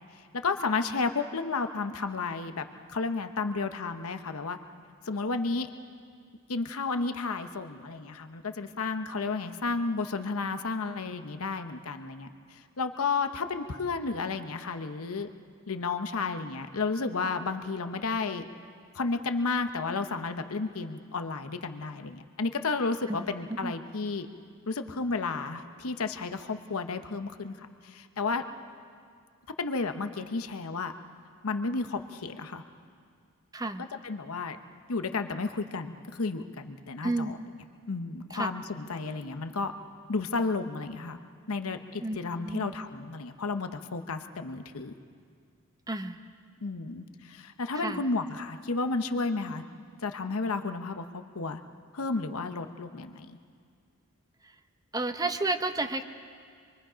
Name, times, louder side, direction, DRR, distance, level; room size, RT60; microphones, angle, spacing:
voice 1, 0.3-4.6 5.1-5.7 6.5-15.3 15.7-18.5 18.9-24.3 24.7-28.4 29.6-30.9 31.4-32.6 33.8-34.6 34.9-37.3 37.9-39.7 40.1-41.2 41.5-44.9 46.6-49.6 50.0-51.6 51.9-53.4, left 4 dB, 70° left, 8 dB, 0.9 m, -32 dB
voice 2, 33.5-33.9 37.0-37.3 38.3-38.5 42.0-42.7 45.9-46.2 47.7-48.0 54.9-56.0, right 2 dB, 15° right, 8 dB, 0.7 m, -31 dB
26.5 x 23.0 x 5.1 m, 2.1 s
head